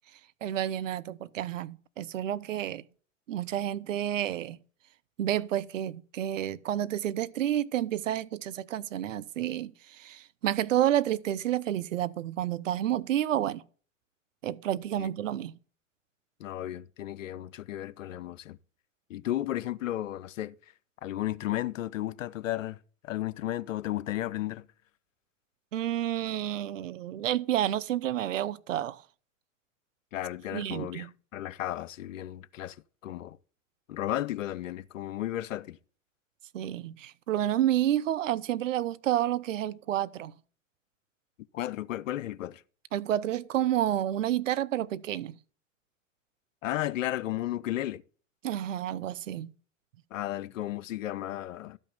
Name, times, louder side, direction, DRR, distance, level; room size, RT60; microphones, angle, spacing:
voice 1, 0.4-2.8 3.3-4.6 5.2-13.6 14.4-15.6 25.7-29.0 30.5-31.1 36.5-40.3 42.9-45.4 48.4-49.5, right 12 dB, 70° right, 0.8 m, -30 dB
voice 2, 16.4-18.6 19.1-20.6 21.0-22.8 23.0-24.7 30.1-32.8 33.0-33.4 33.9-35.8 41.5-42.6 46.6-48.0 50.1-51.8, left 14 dB, 75° left, 0.7 m, -34 dB
12.5 x 5.4 x 7.0 m
hypercardioid pair, 95°, 39 cm